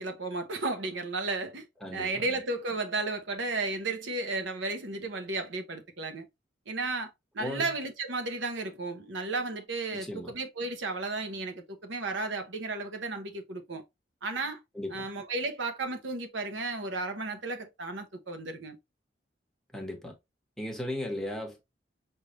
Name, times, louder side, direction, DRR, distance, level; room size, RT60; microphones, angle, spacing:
voice 1, 0.0-1.7 1.9-6.3 6.7-13.8 14.2-14.6 14.9-18.8, right 3 dB, 75° right, 0.9 m, -34 dB
voice 2, 1.8-2.2 7.4-7.7 9.9-10.3 14.7-15.1 19.7-20.1 20.6-21.6, left 1 dB, ahead, 1.0 m, -36 dB
5.1 x 2.7 x 3.0 m
head